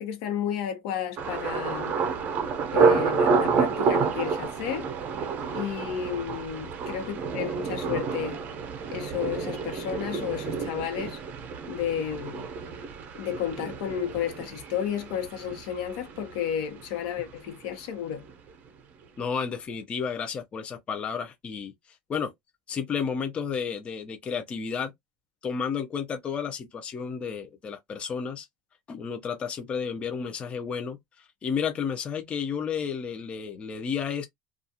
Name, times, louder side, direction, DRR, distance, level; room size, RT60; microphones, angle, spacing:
voice 1, 0.0-1.9 2.7-4.9 5.5-8.4 8.9-11.2 11.7-12.5 13.1-18.2, left 9 dB, 75° left, 0.9 m, -32 dB
Thunder, 1.2-16.9 17.2-17.8 18.2-18.5, right 5 dB, 45° right, 0.7 m, -29 dB
voice 2, 19.2-21.7 22.1-22.3 22.7-24.9 25.4-28.5 28.9-34.3, left 6 dB, 30° left, 0.6 m, -32 dB
2.4 x 2.3 x 2.7 m
supercardioid pair, 125°, 4 cm